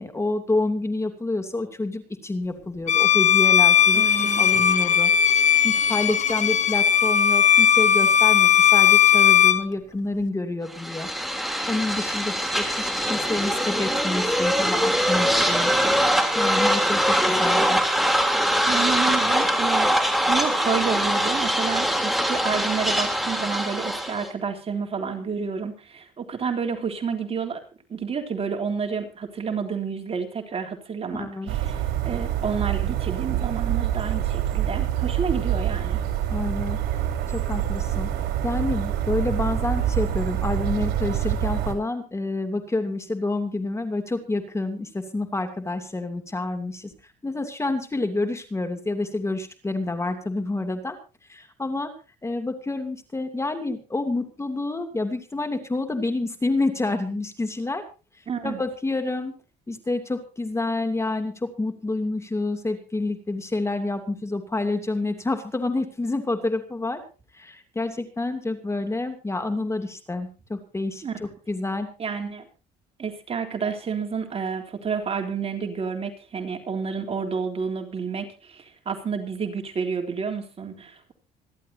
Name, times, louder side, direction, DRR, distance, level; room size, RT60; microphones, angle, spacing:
voice 1, 0.0-5.1 5.6-11.1 11.7-15.7 16.3-17.8 31.1-31.5 36.3-36.8 37.3-38.1 38.4-46.9 47.2-51.0 51.3-51.9 52.2-57.8 58.4-59.4 59.7-67.0 67.3-71.9, left 2 dB, 15° left, 6 dB, 2.7 m, -28 dB
Bowed string instrument, 2.9-9.7, left 9 dB, 45° left, 1.6 m, -18 dB
voice 2, 3.9-4.5 18.7-27.6 27.9-36.0 58.3-58.6 71.0-71.1 72.0-72.4 73.0-81.1, right 6 dB, 35° right, 4 dB, 3.5 m, -30 dB
sound 1, 10.7-24.3, equal, ahead, 3.3 m, -23 dB
sound 2, 31.5-41.8, right 11 dB, 75° right, 4.1 m, -26 dB
27.0 x 12.0 x 2.8 m, 0.33 s
cardioid pair, 110°, 17 cm